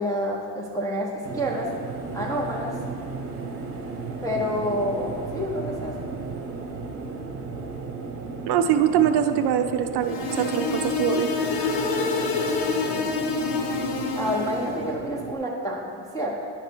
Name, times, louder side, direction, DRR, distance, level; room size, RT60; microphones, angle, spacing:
voice 1, 0.0-1.7 2.1-2.8 4.2-6.0 12.6-13.2 14.2-16.5, equal, 10° left, -4 dB, 0.3 m, -29 dB
sound 1, 1.2-15.4, right 4 dB, 30° right, 0.8 m, -35 dB
voice 2, 8.5-11.3, right 9 dB, 55° right, 7 dB, 0.5 m, -23 dB
sound 2, 10.0-14.8, left 4 dB, 60° left, 0.8 m, -27 dB
10.0 x 3.4 x 5.9 m, 2.3 s
cardioid pair, 160°, 48 cm